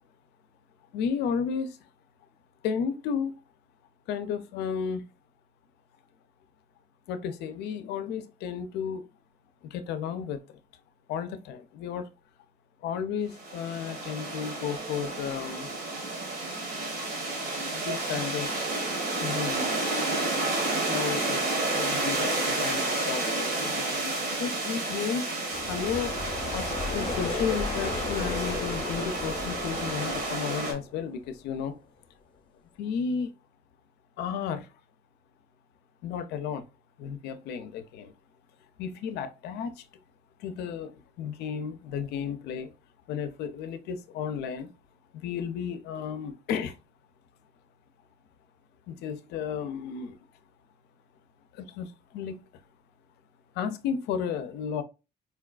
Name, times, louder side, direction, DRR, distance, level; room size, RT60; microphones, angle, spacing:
voice 1, 0.9-1.9 2.6-3.4 4.1-5.1 7.1-9.1 9.6-10.6 11.1-12.1 12.8-15.7 17.7-18.5 19.2-19.9 20.8-24.1 24.4-26.2 26.5-31.8 32.8-33.3 34.2-34.7 36.0-36.7 37.0-38.1 38.8-39.9 40.4-42.7 43.1-44.7 45.1-46.8 48.9-50.2 51.5-52.5 53.5-54.8, left 7 dB, 80° left, 0.5 m, -33 dB
sound 1, 13.3-30.7, right 2 dB, 80° right, 1.4 m, -30 dB
sound 2, 25.5-31.3, left 4 dB, 30° left, 0.7 m, -35 dB
4.3 x 2.3 x 2.3 m
cardioid pair, 110°, 17 cm